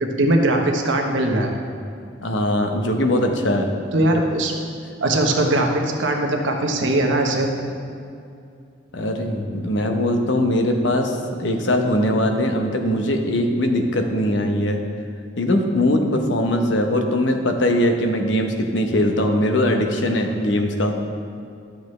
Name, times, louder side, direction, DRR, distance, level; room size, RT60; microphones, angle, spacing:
voice 1, 0.0-1.5 3.9-4.5 5.0-7.5, right 1 dB, 80° right, 2 dB, 1.0 m, -20 dB
voice 2, 2.2-3.7 8.9-14.8 15.4-20.9, left 1 dB, 75° left, 4 dB, 0.9 m, -21 dB
11.5 x 7.2 x 3.2 m, 2.5 s
head